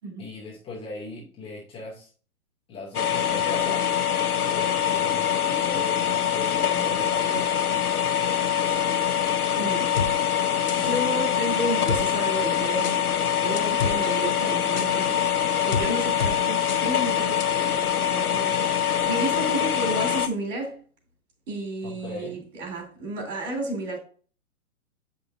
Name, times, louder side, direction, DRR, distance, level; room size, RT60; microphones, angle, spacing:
voice 1, 0.2-2.1 2.7-3.9 4.3-8.1 21.8-22.4, left 2 dB, 15° left, 0.7 m, -38 dB
sound 1, 2.9-20.3, left 9 dB, 85° left, 0.8 m, -24 dB
voice 2, 9.6-9.9 10.7-13.1 13.4-15.2 15.6-20.8 21.5-24.0, right 1 dB, 55° right, 3.1 m, -32 dB
sound 2, 10.0-10.1 10.7-11.0 11.9-12.0 12.8-13.0 13.6-14.0 14.8-14.9 15.7-15.9 16.2-16.3 16.7-16.8 17.4-17.5, left 5 dB, 35° left, 0.4 m, -28 dB
7.6 x 5.4 x 2.5 m
figure-of-eight pair, 125°, 44 cm